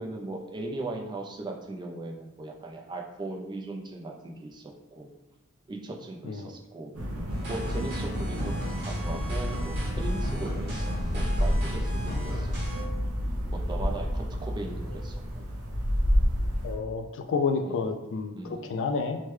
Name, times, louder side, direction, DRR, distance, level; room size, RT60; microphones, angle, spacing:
voice 1, 0.0-5.1 5.7-7.0 7.5-10.9 11.1-12.5 13.5-15.5 17.6-17.8 18.3-18.8, right 2 dB, 20° right, 0 dB, 0.3 m, -38 dB
sound 1, 6.9-16.8, equal, 80° right, 0.7 m, -29 dB
sound 2, 7.3-12.8, equal, 55° right, 1.0 m, -36 dB
voice 2, 16.6-19.2, left 4 dB, 60° left, 6 dB, 0.3 m, -30 dB
3.1 x 2.1 x 3.2 m, 0.95 s
head